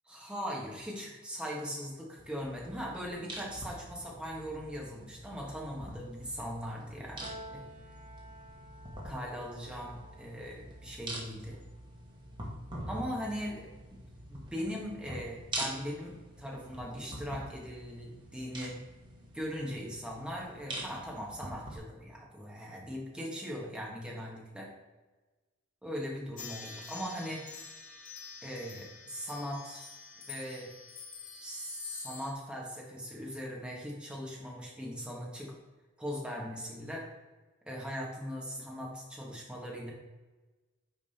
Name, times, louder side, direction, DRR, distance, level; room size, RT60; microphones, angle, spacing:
voice 1, 0.1-7.6 9.0-11.6 12.9-13.7 14.3-18.7 19.3-24.7 25.8-27.4 28.4-29.9 30.3-30.7 31.4-35.5 36.0-37.1 37.7-39.9, equal, 5° right, -3 dB, 1.6 m, -40 dB
sound 1, 2.2-21.8, right 1 dB, 25° right, 1.5 m, -45 dB
Piano, 7.2-13.7, right 1 dB, 40° right, 0.9 m, -53 dB
sound 2, 26.4-32.3, left 5 dB, 45° left, 1.5 m, -47 dB
9.6 x 3.5 x 4.3 m, 1.2 s
head